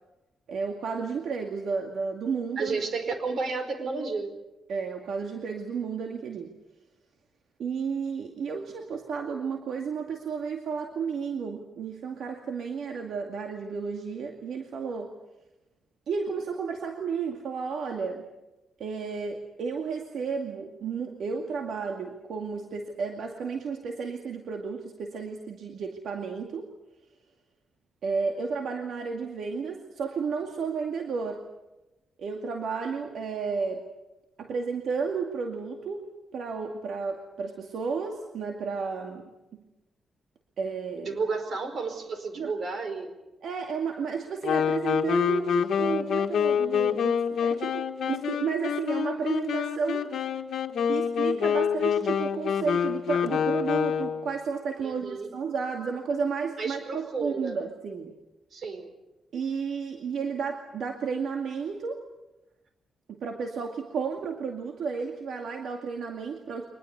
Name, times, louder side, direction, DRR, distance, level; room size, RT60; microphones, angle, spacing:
voice 1, 0.5-2.8 4.7-6.5 7.6-15.1 16.1-18.3 18.8-26.7 28.0-31.5 32.2-33.9 34.4-36.1 36.3-39.6 40.6-41.2 42.4-42.5 43.4-50.2 50.8-58.2 59.3-62.0 63.1-66.7, right 5 dB, 70° right, 3 dB, 2.3 m, -32 dB
voice 2, 2.6-4.3 41.0-43.1 54.8-55.3 56.6-57.6 58.5-58.9, right 4 dB, 50° right, 8 dB, 4.8 m, -32 dB
Wind instrument woodwind instrument, 44.4-54.3, left 7 dB, 70° left, 1.6 m, -27 dB
24.5 x 20.5 x 8.2 m, 1.0 s
cardioid pair, 130°, 0 cm